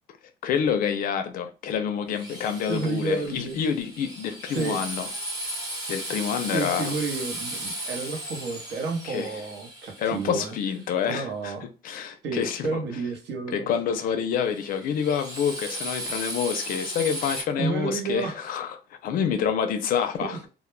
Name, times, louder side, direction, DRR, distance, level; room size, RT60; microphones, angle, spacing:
voice 1, 0.4-5.1 5.9-6.9 9.0-9.4 10.0-11.5 11.8-12.8 13.5-20.4, left 7 dB, 50° left, 0.4 m, -27 dB
Drill, 2.1-11.0 14.4-17.4, right 1 dB, 20° right, 0.8 m, -36 dB
voice 2, 2.7-3.6 4.5-4.8 6.5-10.5 11.1-11.7 12.2-13.7 17.6-18.5 20.2-20.5, right 4 dB, 75° right, 0.8 m, -31 dB
2.1 x 2.1 x 3.0 m
cardioid pair, 175°, 18 cm